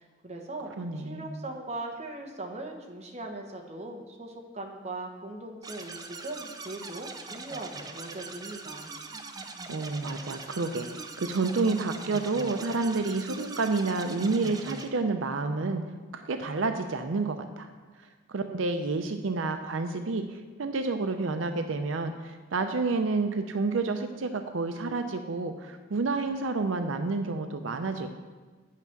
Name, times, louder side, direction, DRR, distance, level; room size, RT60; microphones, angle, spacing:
voice 1, 0.0-8.9, right 2 dB, 35° right, 1 dB, 1.1 m, -40 dB
voice 2, 0.8-1.3 9.7-15.8 16.1-17.7 18.3-28.1, right 3 dB, 80° right, 7 dB, 0.5 m, -29 dB
sound 1, 5.6-14.9, right 3 dB, 20° right, 0.5 m, -41 dB
9.3 x 5.8 x 5.9 m, 1.4 s
head